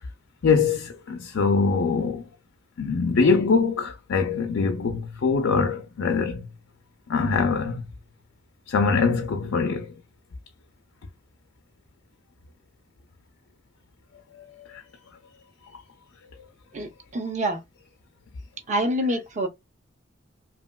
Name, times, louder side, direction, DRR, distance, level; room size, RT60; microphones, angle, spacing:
voice 1, 0.4-2.2 2.8-6.4 7.1-7.8 8.7-9.9 14.3-14.8, left 4 dB, 75° left, 0.4 m, -23 dB
voice 2, 16.7-17.6 18.7-19.5, right 1 dB, 35° right, 0.7 m, -26 dB
2.9 x 2.8 x 2.2 m
head